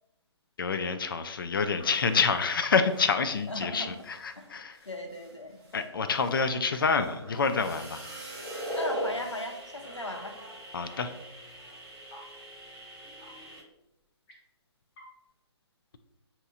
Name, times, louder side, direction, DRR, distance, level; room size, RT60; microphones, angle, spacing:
voice 1, 0.6-4.8 5.7-8.0 10.7-11.1, left 5 dB, 50° left, 10 dB, 0.4 m, -27 dB
sound 1, 1.7-3.6 3.9-13.6, right 2 dB, 10° right, 0.5 m, -48 dB
sound 2, 1.8-1.9 2.3-2.4 2.9-3.0 5.6-5.7 8.0-9.1 10.1-10.2 11.6-11.7 12.1-12.2 13.2-13.3 14.3-14.4 15.0-15.1, equal, 20° left, 0.8 m, -35 dB
voice 2, 3.5-4.0 4.4-5.6 8.7-10.4, left 1 dB, 85° left, 3 dB, 0.7 m, -37 dB
5.3 x 2.9 x 2.4 m, 0.90 s
figure-of-eight pair, 135°, 15 cm